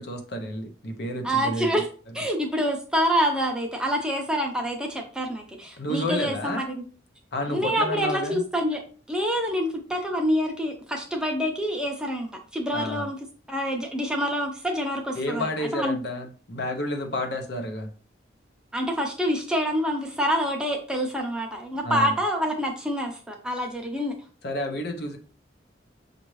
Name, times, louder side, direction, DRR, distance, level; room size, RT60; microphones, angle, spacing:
voice 1, 0.0-1.7 5.8-6.6 7.3-8.4 12.7-13.1 15.1-17.9 21.8-22.1 24.4-25.2, left 1 dB, 55° left, 5 dB, 0.8 m, -30 dB
voice 2, 1.2-1.8 2.1-6.8 7.5-8.8 9.1-13.2 13.5-15.5 15.7-16.0 18.7-24.1, equal, 5° right, 1 dB, 0.6 m, -26 dB
6.3 x 2.6 x 3.1 m, 0.39 s
head